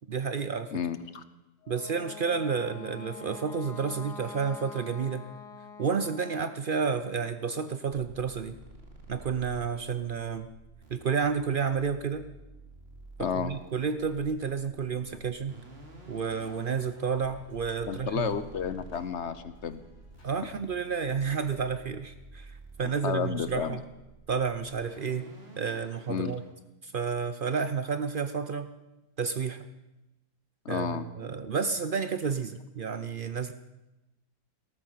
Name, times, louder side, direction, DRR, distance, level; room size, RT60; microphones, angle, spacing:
voice 1, 0.1-0.7 1.7-5.2 5.8-8.6 9.1-10.5 10.9-12.3 13.2-15.6 16.1-18.3 20.2-23.8 24.3-25.2 25.6-26.4 26.8-28.7 29.2-29.7 30.7-33.5, right 6 dB, 70° right, 11 dB, 0.5 m, -31 dB
voice 2, 0.7-1.2 13.2-13.5 17.9-19.8 23.0-23.8 26.1-26.3 30.6-31.1, left 7 dB, 55° left, 13 dB, 0.9 m, -31 dB
Wind instrument woodwind instrument, 1.6-6.6, left 5 dB, 85° left, 1.7 m, -45 dB
sound 1, 8.1-26.5, right 2 dB, 40° right, 2.9 m, -51 dB
sound 2, 15.6-20.6 21.1-21.6, left 2 dB, 70° left, 4.0 m, -56 dB
18.5 x 14.0 x 5.7 m, 1.0 s
omnidirectional pair, 1.7 m